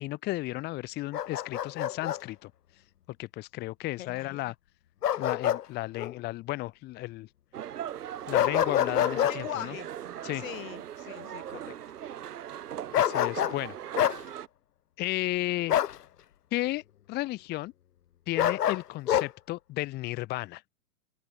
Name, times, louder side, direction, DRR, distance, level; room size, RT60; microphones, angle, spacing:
voice 1, 0.0-2.5 3.2-4.5 5.2-7.3 8.3-9.8 10.2-10.4 12.9-13.8 15.0-15.8 16.5-16.8 17.1-17.7 18.3-20.6, left 18 dB, 20° left, 0.9 m, -33 dB
Bark, 1.1-2.2 5.0-5.6 6.0-6.1 8.3-9.4 12.9-13.6 14.0-14.2 15.7-16.0 18.4-19.3, left 10 dB, 90° left, 0.7 m, -26 dB
voice 2, 4.0-4.5 9.0-9.9 10.3-11.8, left 13 dB, 60° left, 1.5 m, -40 dB
sound 1, 7.5-14.5, right 10 dB, 80° right, 1.0 m, -39 dB
open air
hypercardioid pair, 125°, 46 cm